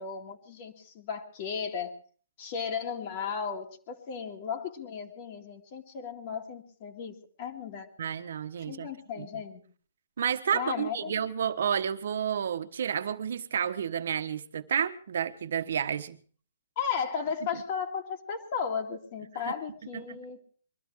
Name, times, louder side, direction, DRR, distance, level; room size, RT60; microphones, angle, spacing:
voice 1, 0.0-2.0 2.4-7.9 8.7-9.6 10.5-11.1 16.8-20.4, left 6 dB, 35° left, 3 dB, 2.3 m, -35 dB
voice 2, 8.0-8.9 9.2-9.3 10.2-16.2 19.4-19.5 19.9-20.2, right 8 dB, 65° right, 9 dB, 1.3 m, -30 dB
22.5 x 13.0 x 4.8 m, 0.43 s
hypercardioid pair, 160°, 0 cm